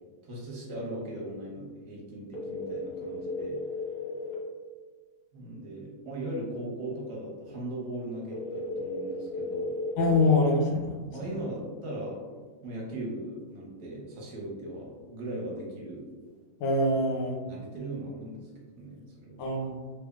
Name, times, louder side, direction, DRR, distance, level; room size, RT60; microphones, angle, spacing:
voice 1, 0.2-3.6 5.3-9.8 11.1-12.2 12.6-16.1 17.4-18.5 18.8-19.5, right 1 dB, 60° right, -4 dB, 1.2 m, -38 dB
sound 1, 2.3-4.3 8.3-10.3, left 1 dB, 60° left, 1.0 m, -34 dB
voice 2, 10.0-11.0 16.6-17.3 19.4-19.7, left 2 dB, 85° left, 0 dB, 1.5 m, -24 dB
3.3 x 3.2 x 2.3 m, 1.4 s
omnidirectional pair, 2.2 m